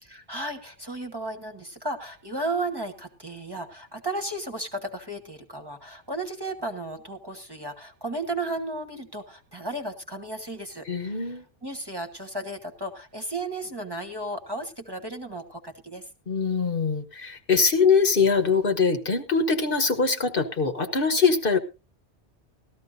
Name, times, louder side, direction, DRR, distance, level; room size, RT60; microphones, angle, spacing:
voice 1, 0.0-11.3 11.6-16.1, right 2 dB, 20° right, 6 dB, 1.2 m, -34 dB
voice 2, 10.8-11.4 16.3-21.6, left 5 dB, 55° left, 7 dB, 1.2 m, -23 dB
18.0 x 13.5 x 2.6 m, 0.29 s
omnidirectional pair, 1.2 m